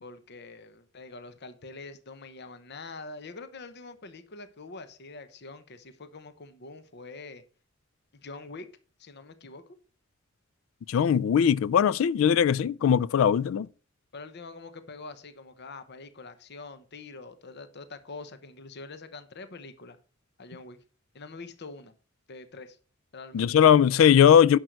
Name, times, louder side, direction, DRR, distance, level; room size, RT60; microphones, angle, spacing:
voice 1, 0.0-7.4 8.1-8.7 9.0-9.8 14.1-20.0 20.4-20.8 21.1-21.9 22.3-22.8 23.1-23.5, left 3 dB, 55° left, 0.9 m, -44 dB
voice 2, 10.9-13.7 23.3-24.6, left 8 dB, 75° left, 0.3 m, -20 dB
10.5 x 6.3 x 4.6 m
head